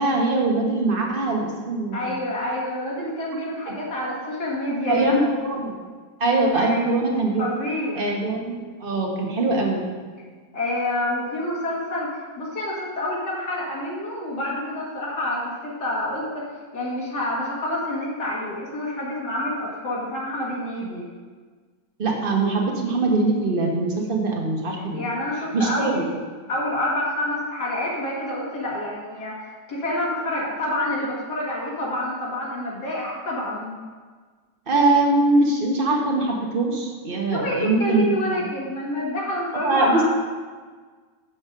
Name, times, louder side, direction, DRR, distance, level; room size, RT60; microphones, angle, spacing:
voice 1, 0.0-2.1 3.7-3.8 4.9-5.8 6.2-7.5 8.0-9.8 22.0-25.0 25.5-26.0 34.7-38.2 39.6-40.0, right 2 dB, 35° right, 0 dB, 1.3 m, -22 dB
voice 2, 1.9-5.2 6.5-7.0 7.4-8.0 10.5-16.5 16.7-21.0 24.9-26.1 26.5-33.7 37.3-40.0, left 1 dB, 65° left, -6 dB, 2.2 m, -28 dB
7.4 x 7.0 x 5.3 m, 1.5 s
omnidirectional pair, 1.9 m